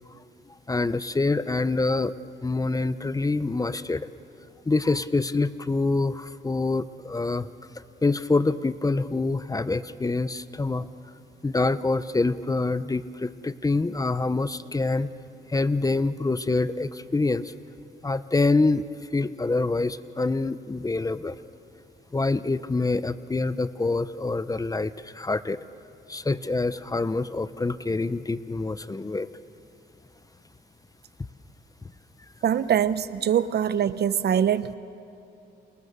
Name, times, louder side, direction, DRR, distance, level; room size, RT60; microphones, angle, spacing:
voice 1, 0.7-2.1 2.4-4.1 4.7-7.5 8.0-10.9 11.4-15.1 15.5-17.5 18.0-18.8 19.1-21.4 22.1-25.6 26.1-29.3, left 3 dB, 20° left, 14 dB, 0.8 m, -26 dB
voice 2, 32.4-34.7, right 9 dB, 55° right, 15 dB, 0.8 m, -23 dB
29.5 x 27.0 x 6.9 m, 2.7 s
cardioid pair, 90°, 20 cm